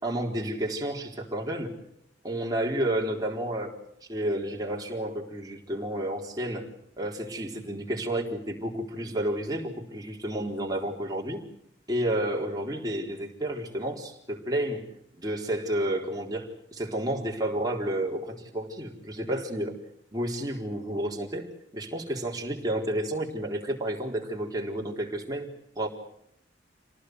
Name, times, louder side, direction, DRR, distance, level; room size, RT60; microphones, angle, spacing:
voice 1, 0.0-1.8 2.2-3.7 4.1-6.7 7.0-11.4 11.9-14.9 15.2-19.8 20.1-25.9, right 1 dB, 20° right, 0 dB, 4.1 m, -31 dB
27.5 x 19.0 x 8.1 m, 0.74 s
head